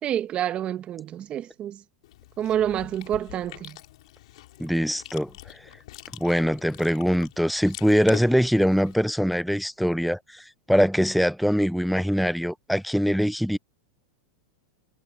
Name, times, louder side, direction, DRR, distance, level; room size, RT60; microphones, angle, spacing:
voice 1, 0.0-1.8 2.4-3.8, right 10 dB, 30° right, 1.3 m, -28 dB
Chewing mastication, 2.0-8.9, left 17 dB, 70° left, 4.5 m, -45 dB
voice 2, 4.6-5.6 6.2-13.6, equal, ahead, 0.4 m, -23 dB
hypercardioid pair, 120°, 4 cm